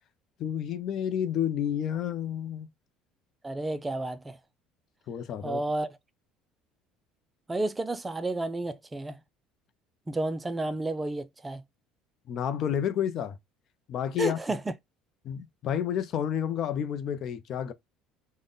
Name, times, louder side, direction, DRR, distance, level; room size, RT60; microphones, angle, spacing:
voice 1, 0.4-2.7 5.1-5.6 12.3-13.4 13.9-14.4 15.2-17.7, left 9 dB, 50° left, 0.5 m, -30 dB
voice 2, 3.4-4.4 5.4-5.9 7.5-9.2 10.1-11.6 14.2-14.7, right 2 dB, 15° right, 0.3 m, -31 dB
3.7 x 2.1 x 3.8 m
cardioid pair, 130°, 0 cm